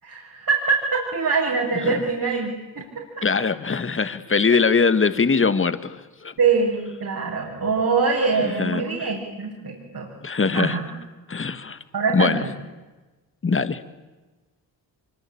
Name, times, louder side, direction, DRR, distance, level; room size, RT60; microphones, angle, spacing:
voice 1, 0.0-2.8 6.4-10.1 10.5-10.8 11.9-12.5, right 4 dB, 50° right, -2 dB, 6.5 m, -23 dB
voice 2, 3.2-6.3 8.4-9.1 10.2-10.8 11.3-11.8 12.1-12.4 13.4-13.8, left 5 dB, 25° left, 12 dB, 1.7 m, -22 dB
24.5 x 24.0 x 8.8 m, 1.2 s
supercardioid pair, 55°, 45 cm